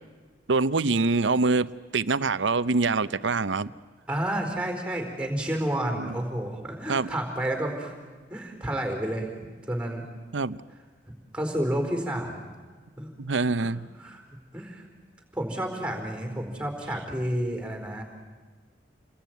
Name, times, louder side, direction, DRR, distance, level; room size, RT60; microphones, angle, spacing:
voice 1, 0.5-3.7 6.0-6.1 6.9-7.1 10.3-10.6 13.2-13.9, right 3 dB, 90° right, 16 dB, 0.8 m, -25 dB
voice 2, 4.1-7.9 8.3-9.3 9.7-10.0 11.3-12.4 13.0-13.1 13.6-13.7 14.0-14.2 14.5-14.9 15.3-18.0, right 1 dB, 5° right, 4 dB, 4.3 m, -30 dB
29.0 x 21.0 x 9.4 m, 1.4 s
head